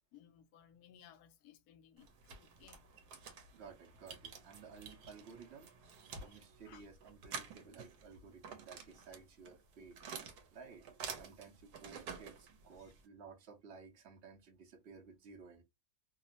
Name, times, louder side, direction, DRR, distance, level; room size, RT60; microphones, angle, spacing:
voice 1, 0.1-2.8 3.1-3.2 6.2-6.3 6.6-6.9 12.8-12.9, left 10 dB, 75° left, 1.0 m, -61 dB
sound 1, 2.0-13.1, right 6 dB, 85° right, 1.2 m, -50 dB
voice 2, 3.5-5.9 6.2-10.0 10.5-10.8 11.1-15.6, right 5 dB, 55° right, 0.8 m, -55 dB
2.8 x 2.0 x 2.7 m
omnidirectional pair, 1.7 m